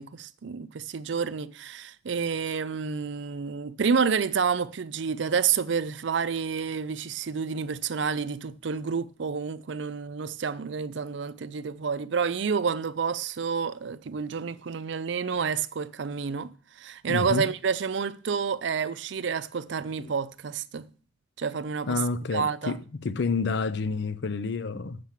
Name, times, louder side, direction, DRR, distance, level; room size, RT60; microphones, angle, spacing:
voice 1, 0.0-20.9 21.4-22.0 22.3-22.8, right 6 dB, 65° right, 0.5 m, -29 dB
voice 2, 17.1-17.5 20.0-20.1 21.9-25.0, left 4 dB, 60° left, 0.5 m, -29 dB
7.4 x 6.7 x 7.3 m
head